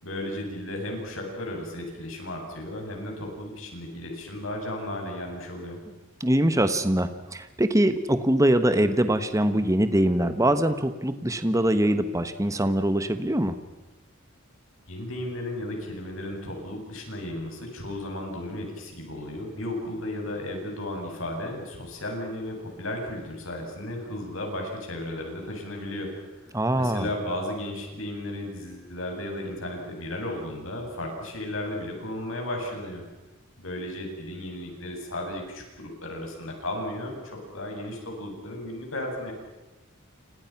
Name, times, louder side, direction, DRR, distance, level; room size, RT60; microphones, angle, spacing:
voice 1, 0.0-5.8 14.9-26.1 26.7-33.1 33.6-39.3, left 1 dB, 75° left, 1 dB, 8.0 m, -34 dB
voice 2, 6.2-13.6 26.5-27.1, right 1 dB, 15° right, 10 dB, 1.3 m, -23 dB
30.0 x 26.5 x 6.0 m, 1.1 s
head